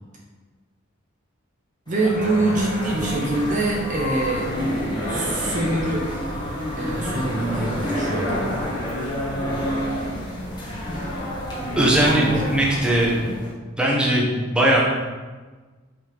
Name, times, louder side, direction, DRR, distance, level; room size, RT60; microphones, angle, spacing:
sound 1, 1.9-13.5, equal, 20° left, 1.5 m, -28 dB
voice 1, 1.9-4.5 5.1-6.1 6.8-8.4 12.0-12.4, right 2 dB, 35° right, -2 dB, 0.8 m, -24 dB
voice 2, 11.8-13.2 13.8-14.8, right 1 dB, 5° right, -4 dB, 1.0 m, -19 dB
5.6 x 5.4 x 3.5 m, 1.3 s
head